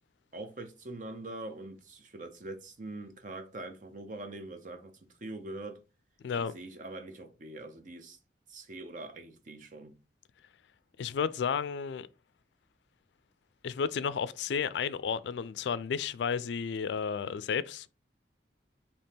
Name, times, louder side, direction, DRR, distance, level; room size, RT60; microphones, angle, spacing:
voice 1, 0.3-4.9 5.2-5.8 6.4-8.2 8.5-10.0, right 2 dB, 45° right, 0.6 m, -43 dB
voice 2, 6.2-6.5 11.0-12.1 13.6-17.9, left 6 dB, 75° left, 0.3 m, -32 dB
4.2 x 2.9 x 3.4 m
head